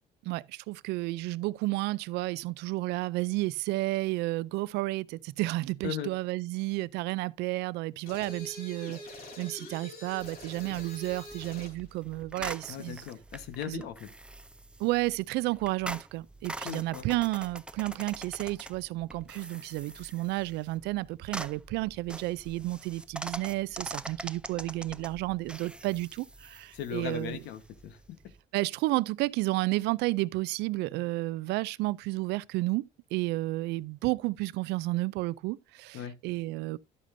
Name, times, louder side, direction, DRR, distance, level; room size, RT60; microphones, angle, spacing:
voice 1, 0.2-9.0 9.4-13.0 13.7-13.8 14.8-27.4 28.5-36.8, right 19 dB, 85° right, 0.4 m, -31 dB
sound 1, 8.1-11.8, left 1 dB, 65° left, 3.4 m, -45 dB
sound 2, 10.2-28.4, right 2 dB, 5° right, 0.4 m, -44 dB
voice 2, 12.7-14.1 16.6-17.2 26.7-28.2 35.9-36.2, left 10 dB, 80° left, 1.2 m, -38 dB
11.0 x 8.3 x 2.6 m
cardioid pair, 110°, 17 cm